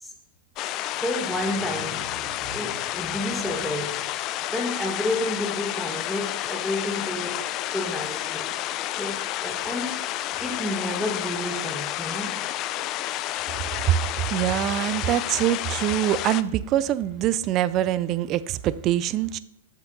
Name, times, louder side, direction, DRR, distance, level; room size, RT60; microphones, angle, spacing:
sound 1, 0.6-16.4, left 14 dB, 40° left, 0.4 m, -30 dB
voice 1, 1.0-4.1 4.5-7.5 7.7-8.5 9.0-10.0 10.4-12.4, left 1 dB, 5° left, 1.3 m, -30 dB
voice 2, 14.3-19.4, right 13 dB, 35° right, 0.4 m, -24 dB
7.6 x 6.5 x 3.8 m
hypercardioid pair, 110°, 0 cm